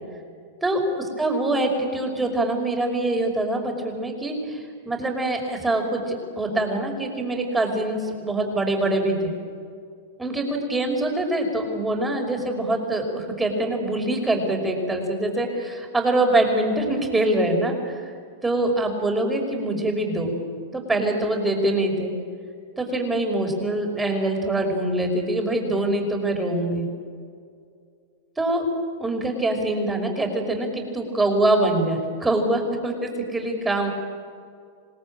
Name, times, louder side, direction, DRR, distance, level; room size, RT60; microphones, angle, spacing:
voice 1, 0.6-9.3 10.2-18.0 18.4-20.3 20.7-22.1 22.8-26.9 28.4-28.7 29.0-33.9, right 1 dB, 10° right, 3 dB, 5.6 m, -24 dB
27.0 x 19.0 x 9.0 m, 2.3 s
hypercardioid pair, 120°, 0 cm